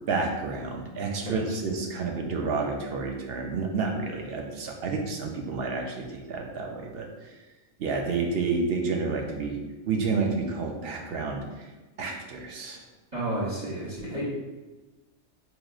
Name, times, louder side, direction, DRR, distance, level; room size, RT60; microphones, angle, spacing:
voice 1, 0.1-7.3 7.8-9.6 9.9-11.7 12.0-12.8, right 4 dB, 60° right, 1 dB, 0.7 m, -30 dB
voice 2, 13.1-14.3, right 1 dB, 35° right, -7 dB, 1.0 m, -31 dB
4.9 x 3.0 x 2.4 m, 1.2 s
omnidirectional pair, 1.3 m